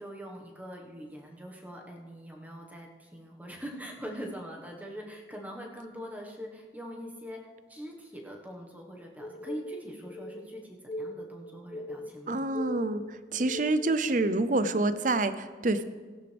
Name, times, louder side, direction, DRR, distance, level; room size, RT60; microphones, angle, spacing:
voice 1, 0.0-7.4 7.7-12.4, equal, 10° right, 0 dB, 1.4 m, -43 dB
sound 1, 9.2-14.0, left 1 dB, 25° left, 0.4 m, -40 dB
voice 2, 12.3-15.8, right 2 dB, 45° right, 12 dB, 0.6 m, -27 dB
17.0 x 11.0 x 3.5 m, 1.5 s
head